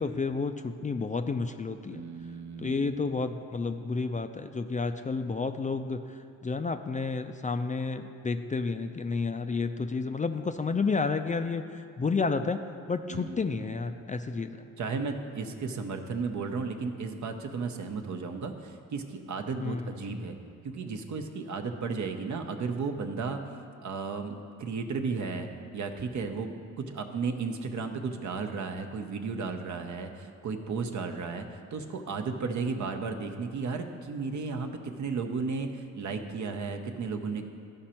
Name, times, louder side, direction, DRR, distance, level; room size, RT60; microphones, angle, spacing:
voice 1, 0.0-2.0 2.6-6.0 6.4-12.6 12.9-14.6 19.6-20.2, left 4 dB, 25° left, 8 dB, 0.4 m, -31 dB
voice 2, 1.9-2.9 13.1-13.8 14.8-20.3 20.6-23.4 23.8-25.5 25.7-37.5, right 4 dB, 60° right, 5 dB, 0.9 m, -34 dB
13.5 x 5.2 x 4.3 m, 2.4 s
supercardioid pair, 65°, 34 cm